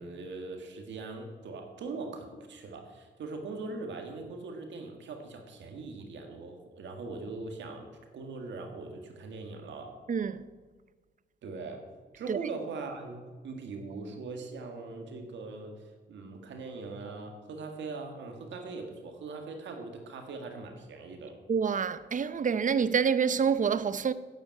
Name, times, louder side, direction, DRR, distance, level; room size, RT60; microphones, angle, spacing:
voice 1, 0.0-7.9 8.1-10.0 11.4-11.8 12.2-15.7 16.1-21.4, right 3 dB, 85° right, 1.8 m, -41 dB
voice 2, 10.1-10.4 12.3-12.4 21.5-24.1, right 6 dB, 45° right, 0.7 m, -27 dB
9.6 x 8.4 x 8.6 m
cardioid pair, 70°, 18 cm